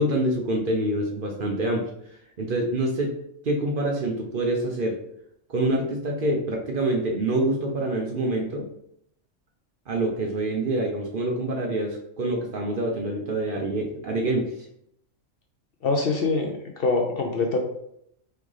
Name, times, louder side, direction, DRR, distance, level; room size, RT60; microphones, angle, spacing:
voice 1, 0.0-1.9 2.4-3.1 3.4-5.0 5.5-8.7 9.9-14.5, right 1 dB, 50° right, 1 dB, 0.7 m, -26 dB
voice 2, 15.8-17.6, left 3 dB, 60° left, 3 dB, 0.7 m, -24 dB
4.5 x 3.6 x 3.2 m, 0.74 s
omnidirectional pair, 1.3 m